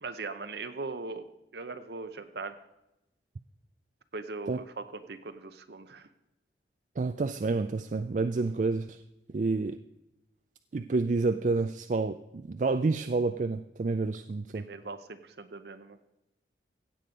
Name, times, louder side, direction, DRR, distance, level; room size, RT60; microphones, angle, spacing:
voice 1, 0.0-1.2 1.5-2.6 4.1-6.1 14.5-16.0, right 3 dB, 65° right, 9 dB, 0.8 m, -40 dB
voice 2, 7.0-9.0 9.3-9.8 10.7-14.6, right 3 dB, 45° right, 10 dB, 0.4 m, -29 dB
16.0 x 7.8 x 5.2 m, 0.89 s
head